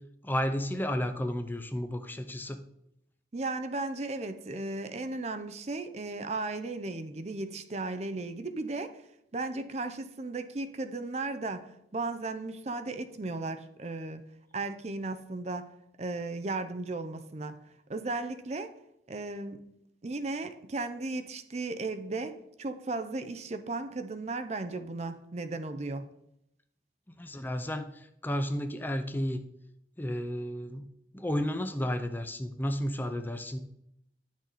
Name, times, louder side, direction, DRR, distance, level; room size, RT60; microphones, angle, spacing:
voice 1, 0.2-2.6 27.2-29.4 30.0-30.8 31.1-33.6, equal, 10° left, 8 dB, 0.5 m, -32 dB
voice 2, 3.3-9.0 9.3-14.2 14.5-15.7 16.0-17.6 17.9-18.7 19.1-19.6 20.0-26.1, right 3 dB, 40° right, 9 dB, 0.6 m, -35 dB
10.5 x 6.2 x 4.1 m, 0.79 s
head